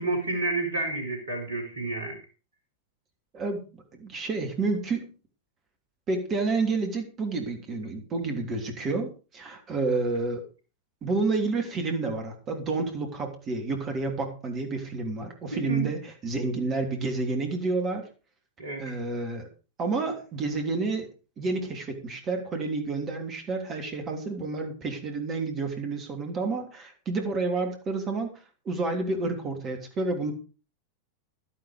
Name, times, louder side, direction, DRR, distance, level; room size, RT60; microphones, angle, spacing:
voice 1, 0.0-2.2 15.5-15.9 18.6-18.9, right 2 dB, 65° right, 5 dB, 4.8 m, -30 dB
voice 2, 3.9-5.1 6.1-10.4 11.0-18.1 18.8-19.5 19.8-21.1 21.4-28.3 28.6-30.3, right 3 dB, 30° right, 5 dB, 3.2 m, -29 dB
11.5 x 11.0 x 5.1 m, 0.34 s
figure-of-eight pair, 90°, 0 cm